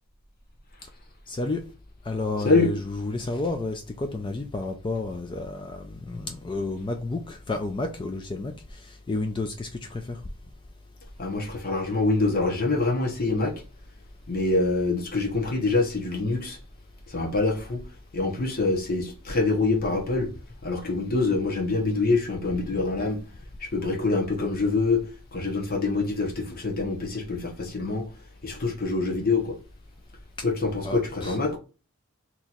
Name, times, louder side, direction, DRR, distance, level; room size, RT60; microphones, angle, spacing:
voice 1, 1.3-1.6 2.1-10.2 30.8-31.4, left 2 dB, 25° left, 0.4 m, -31 dB
voice 2, 11.2-13.6 14.3-16.6 17.1-17.8 18.1-20.3 20.6-23.2 23.6-25.0 25.3-28.1 28.4-29.6 30.4-31.6, left 3 dB, 45° left, 1.0 m, -25 dB
4.2 x 2.9 x 2.4 m
head